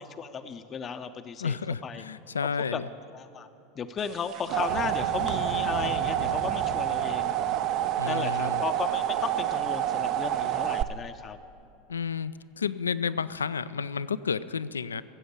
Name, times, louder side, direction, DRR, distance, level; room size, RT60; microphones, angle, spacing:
voice 1, 0.2-1.6 1.8-2.0 2.7-2.8 3.1-3.5 3.8-7.3 8.0-11.4, left 6 dB, 30° left, 9 dB, 0.5 m, -35 dB
voice 2, 1.4-2.9 8.0-8.6 11.9-15.0, left 6 dB, 85° left, 16 dB, 0.3 m, -31 dB
sound 1, 4.1-10.8, right 13 dB, 50° right, 0.5 m, -28 dB
sound 2, 4.7-8.1, right 3 dB, 80° right, 2.8 m, -39 dB
15.0 x 7.8 x 8.1 m, 2.6 s
figure-of-eight pair, 80°, 0 cm